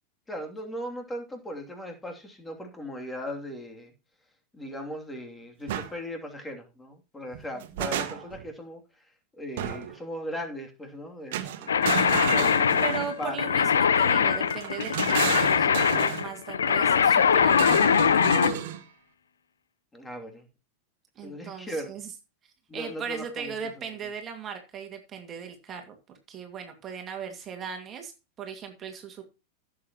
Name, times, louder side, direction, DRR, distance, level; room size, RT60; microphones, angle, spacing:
voice 1, 0.3-3.9 4.5-9.1 9.3-11.7 12.1-13.6 19.9-20.5 21.2-22.0 22.7-23.8, equal, 10° left, 3 dB, 2.9 m, -38 dB
sound 1, 5.7-5.9 7.3-8.5 9.6-10.0 11.3-13.2 14.5-16.3 17.5-18.8, right 11 dB, 50° right, 1.5 m, -32 dB
sound 2, 11.7-18.6, left 7 dB, 70° left, 1.0 m, -22 dB
voice 2, 12.8-17.9 21.2-22.0 22.7-25.9 26.3-28.1 28.4-29.2, right 7 dB, 25° right, 4 dB, 2.2 m, -38 dB
16.0 x 7.8 x 3.0 m, 0.30 s
figure-of-eight pair, 90°, 0 cm